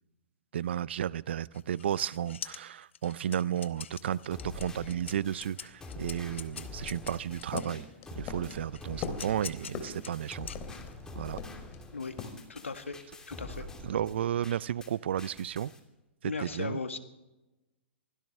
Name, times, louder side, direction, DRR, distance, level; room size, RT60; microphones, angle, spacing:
voice 1, 0.5-7.9 8.2-10.5 11.1-11.4 13.8-15.7 16.2-16.8, right 10 dB, 65° right, 22 dB, 0.5 m, -33 dB
sound 1, 1.5-7.8 8.5-11.1, left 8 dB, 70° left, 1.0 m, -45 dB
sound 2, 3.9-14.9 15.2-15.8, left 2 dB, 10° left, 2.7 m, -45 dB
sound 3, 6.8-11.0 11.4-11.8 12.2-12.4, left 6 dB, 35° left, 2.9 m, -41 dB
voice 2, 12.5-13.0 13.3-13.7 16.2-17.0, left 4 dB, 85° left, 8 dB, 1.7 m, -36 dB
24.5 x 16.5 x 3.3 m, 1.0 s
figure-of-eight pair, 115°, 7 cm